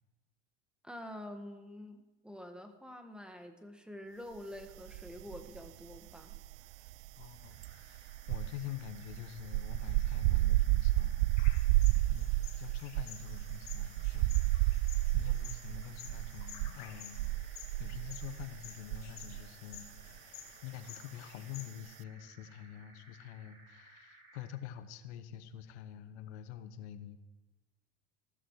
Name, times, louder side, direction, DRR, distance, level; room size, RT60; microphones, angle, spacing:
voice 1, 0.8-6.3, left 1 dB, 5° right, 6 dB, 1.6 m, -47 dB
sound 1, 4.9-5.7 5.9-19.5 19.7-20.0, right 18 dB, 60° right, 0.5 m, -31 dB
voice 2, 7.2-11.4 11.7-20.3 20.6-27.2, left 10 dB, 70° left, 10 dB, 1.2 m, -47 dB
sound 2, 7.2-24.6, right 2 dB, 35° right, 5.4 m, -61 dB
sound 3, 11.4-21.7, left 9 dB, 50° left, 2.4 m, -53 dB
15.0 x 13.5 x 4.8 m, 1.1 s
supercardioid pair, 110°, 35 cm